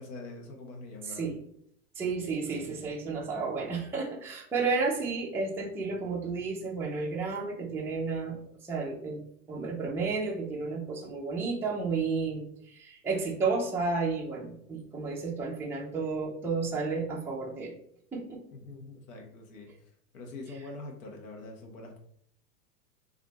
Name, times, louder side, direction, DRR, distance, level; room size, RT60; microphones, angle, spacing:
voice 1, 0.0-1.3 18.5-19.7 20.1-22.0, left 2 dB, 65° left, 1 dB, 1.3 m, -44 dB
voice 2, 1.0-1.4 2.0-9.2 9.5-17.8 18.1-18.4 20.5-20.7, right 4 dB, 5° right, -2 dB, 0.4 m, -32 dB
3.2 x 2.6 x 4.0 m, 0.69 s
hypercardioid pair, 110°, 46 cm